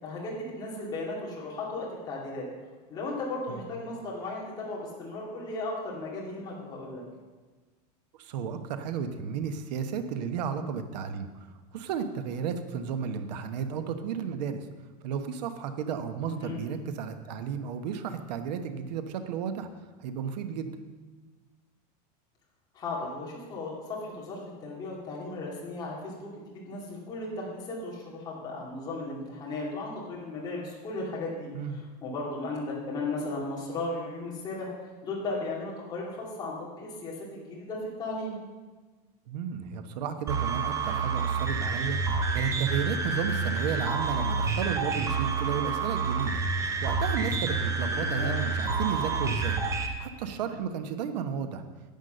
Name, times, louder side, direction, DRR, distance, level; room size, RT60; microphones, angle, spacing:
voice 1, 0.0-2.4 2.9-7.0 16.2-16.6 22.7-38.4 48.0-48.4, left 2 dB, 20° left, -4 dB, 2.4 m, -36 dB
voice 2, 8.2-11.3 11.7-14.6 15.0-19.7 20.0-20.7 31.5-31.8 39.3-42.0 42.3-46.4 46.8-49.6 50.0-51.6, right 7 dB, 80° right, 8 dB, 1.2 m, -33 dB
sound 1, 40.3-49.9, right 4 dB, 15° right, 0.7 m, -28 dB
10.5 x 8.3 x 6.7 m, 1.3 s
supercardioid pair, 180°, 21 cm